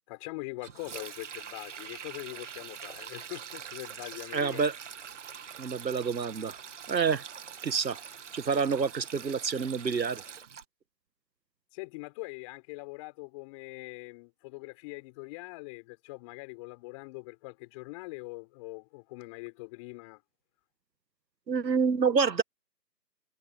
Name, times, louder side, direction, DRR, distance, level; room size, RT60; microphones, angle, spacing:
voice 1, 0.1-4.7 11.7-20.2, left 26 dB, 20° left, 5.7 m, -43 dB
Sink (filling or washing), 0.6-10.6, right 7 dB, 45° right, 2.2 m, -44 dB
voice 2, 4.3-4.7 5.6-6.6 6.9-7.2 7.6-8.0 8.3-10.2 21.5-22.4, right 5 dB, 85° right, 1.7 m, -27 dB
hypercardioid pair, 160°, 49 cm